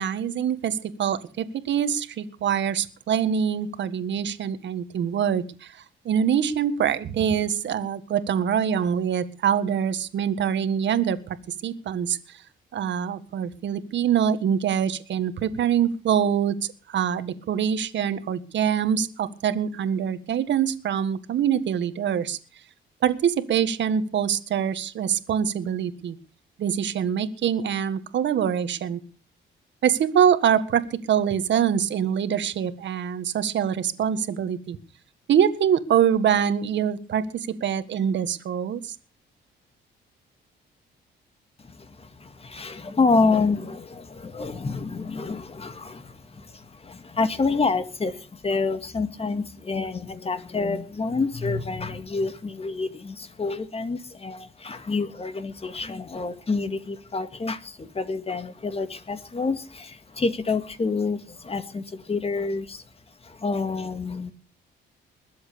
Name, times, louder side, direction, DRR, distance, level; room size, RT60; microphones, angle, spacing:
voice 1, 0.0-5.8 6.1-11.4 11.6-12.2 12.7-16.6 16.9-22.4 23.0-26.2 26.6-29.0 29.8-34.8 35.3-37.2 37.6-39.0, right 8 dB, 65° right, 11 dB, 1.7 m, -24 dB
voice 2, 41.6-62.8 63.2-64.3, left 4 dB, 30° left, 10 dB, 2.0 m, -28 dB
21.5 x 7.9 x 6.9 m, 0.38 s
cardioid pair, 90°, 20 cm